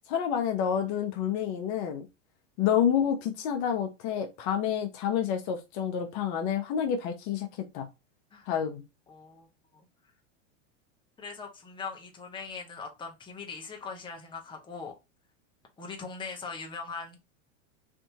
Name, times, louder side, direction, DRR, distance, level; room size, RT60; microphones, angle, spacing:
voice 1, 0.1-2.1 2.6-7.5 7.7-7.9 8.5-8.8, left 8 dB, 50° left, 0.8 m, -28 dB
voice 2, 9.1-9.5 11.2-14.9 15.8-17.2, left 5 dB, 15° left, 0.9 m, -40 dB
3.5 x 2.7 x 2.8 m
hypercardioid pair, 110°, 37 cm